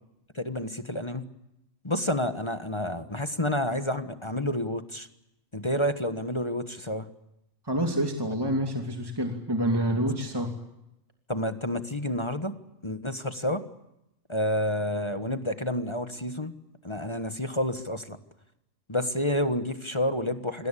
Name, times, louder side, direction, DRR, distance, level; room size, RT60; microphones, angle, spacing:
voice 1, 0.3-1.3 1.8-5.1 5.5-7.1 11.3-12.5 12.8-13.6 14.3-16.5 16.8-18.2 18.9-20.7, left 1 dB, 25° left, 9 dB, 1.4 m, -29 dB
voice 2, 7.6-10.5, right 1 dB, 20° right, 3 dB, 2.8 m, -27 dB
28.0 x 21.0 x 8.5 m, 0.88 s
omnidirectional pair, 1.3 m